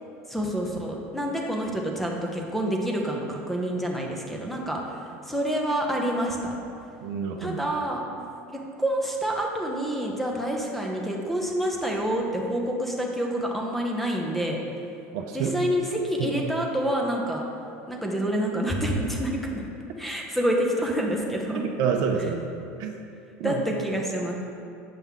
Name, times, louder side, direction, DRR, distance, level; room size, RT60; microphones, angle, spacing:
voice 1, 0.3-6.5 7.4-8.0 8.8-14.6 15.3-17.4 17.9-19.6 20.0-21.6 23.4-24.3, equal, 5° left, -1 dB, 1.0 m, -27 dB
voice 2, 7.0-7.6 15.1-15.6 16.2-16.3 21.8-22.5 22.8-22.9 23.4-23.6, right 6 dB, 60° right, 3 dB, 0.7 m, -27 dB
7.5 x 5.4 x 3.6 m, 2.7 s
supercardioid pair, 100°, 7 cm